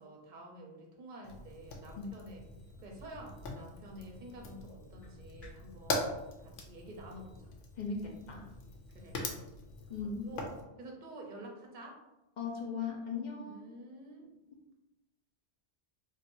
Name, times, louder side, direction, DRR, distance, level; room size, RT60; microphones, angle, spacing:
voice 1, 0.0-2.4 2.8-6.1 6.4-7.5 8.9-9.4 10.0-10.5 10.8-12.0 13.4-14.2, right 1 dB, 45° right, 1 dB, 0.7 m, -49 dB
Fire, 1.2-10.6, left 2 dB, 90° left, 0.9 m, -42 dB
sound 1, 3.4-5.8, left 2 dB, ahead, 1.3 m, -55 dB
voice 2, 7.7-8.5 9.9-10.3 12.4-13.7, left 5 dB, 50° left, 0 dB, 0.6 m, -38 dB
4.4 x 2.4 x 2.6 m, 0.97 s
omnidirectional pair, 1.2 m